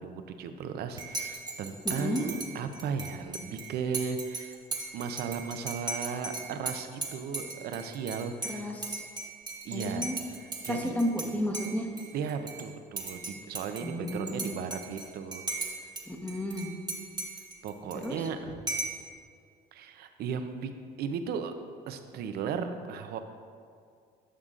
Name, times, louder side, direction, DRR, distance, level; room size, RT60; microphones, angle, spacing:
voice 1, 0.0-4.6 4.9-8.7 9.6-10.1 10.6-11.0 12.1-15.4 17.6-18.5 19.7-21.5 21.9-23.2, right 6 dB, 70° right, 8 dB, 0.6 m, -36 dB
Dishes pots and pans / Cutlery silverware / Chink clink, 1.0-11.3 11.5-12.6 13.0-16.0 16.3-18.3 18.7-19.0, right 2 dB, 25° right, 1.3 m, -38 dB
voice 2, 1.8-2.2 8.5-9.0 9.7-10.1 10.7-11.9 13.8-14.5 16.1-16.7 18.0-18.2, equal, 10° left, 0 dB, 1.0 m, -32 dB
11.0 x 6.6 x 2.5 m, 2.2 s
cardioid pair, 110°, 17 cm